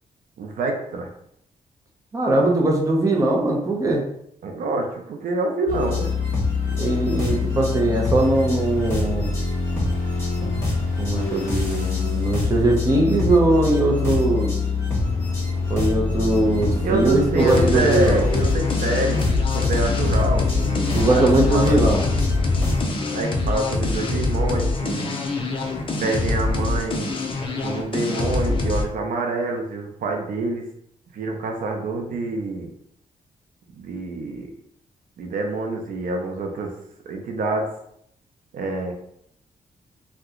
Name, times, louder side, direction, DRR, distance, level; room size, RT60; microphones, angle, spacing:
voice 1, 0.4-1.1 4.4-6.2 16.8-19.2 19.5-21.2 21.5-21.8 23.1-25.1 26.0-27.2 27.6-30.6 31.1-32.7 33.7-34.5 35.2-36.7 37.1-37.7 38.5-38.9, right 3 dB, 80° right, 2 dB, 0.5 m, -26 dB
voice 2, 2.1-4.0 6.8-9.3 10.4-14.5 15.7-18.3 20.9-22.0, right 2 dB, 25° right, -1 dB, 0.7 m, -21 dB
sound 1, 5.7-22.8, left 4 dB, 15° left, 1.2 m, -24 dB
sound 2, 17.4-28.8, left 2 dB, 40° left, 0.5 m, -25 dB
2.8 x 2.2 x 3.7 m, 0.72 s
wide cardioid pair, 140°, 14 cm